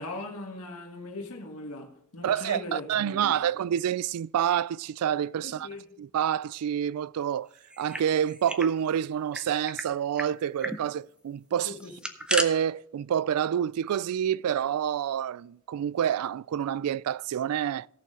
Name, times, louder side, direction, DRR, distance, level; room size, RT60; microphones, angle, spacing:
voice 1, 0.0-3.4 5.4-5.9 11.6-12.0, left 2 dB, 85° left, 1.7 m, -39 dB
voice 2, 2.2-5.7 6.0-7.5 7.8-11.7 12.3-17.9, right 9 dB, 85° right, 0.3 m, -28 dB
sound 1, 7.6-8.7 9.0-9.1 9.3-9.9 10.2-10.3 10.6-10.8 11.8-12.5, right 1 dB, 5° right, 0.8 m, -32 dB
17.5 x 6.7 x 3.7 m
head